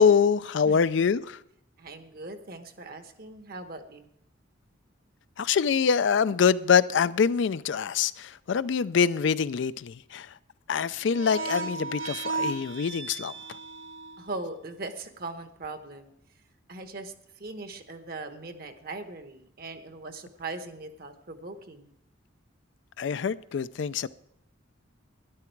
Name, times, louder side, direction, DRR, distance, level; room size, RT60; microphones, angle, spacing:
voice 1, 0.0-1.4 5.4-10.3 10.7-13.3 23.0-24.1, left 6 dB, 65° left, 0.4 m, -24 dB
voice 2, 0.6-1.1 1.8-4.1 14.2-16.1 16.7-17.1 17.4-21.9, right 2 dB, 50° right, 1.0 m, -40 dB
sound 1, 11.1-14.4, right 3 dB, 75° right, 0.9 m, -35 dB
12.0 x 11.0 x 4.6 m
head